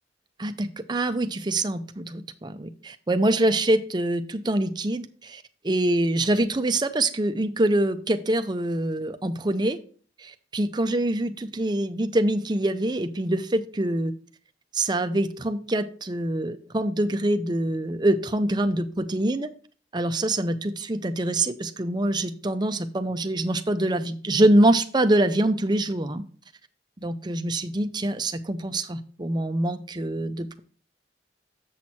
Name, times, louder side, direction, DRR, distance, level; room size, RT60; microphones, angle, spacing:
voice 1, 0.4-9.8 10.2-14.1 14.7-19.5 19.9-26.2 27.0-30.6, right 1 dB, 25° right, 9 dB, 0.6 m, -25 dB
7.4 x 6.2 x 4.2 m, 0.42 s
head